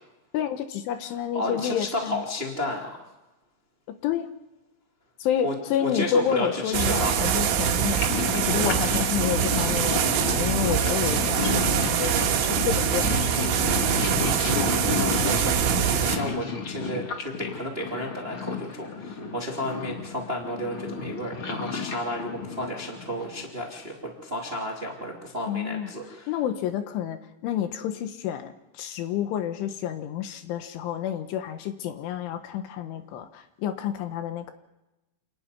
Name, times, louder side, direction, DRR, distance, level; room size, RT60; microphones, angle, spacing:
voice 1, 0.3-2.2 3.9-4.3 5.2-8.0 8.3-13.7 25.5-25.9 26.3-34.5, left 10 dB, 75° left, 8 dB, 3.6 m, -29 dB
voice 2, 1.3-3.0 5.4-5.5 5.8-7.3 14.3-26.3, left 1 dB, 20° right, 0 dB, 1.8 m, -32 dB
Purr, 5.8-23.4, left 5 dB, 45° left, 1.7 m, -32 dB
sound 1, 6.7-16.2, right 9 dB, 80° right, 4.1 m, -24 dB
28.5 x 11.0 x 9.9 m, 0.98 s
omnidirectional pair, 5.8 m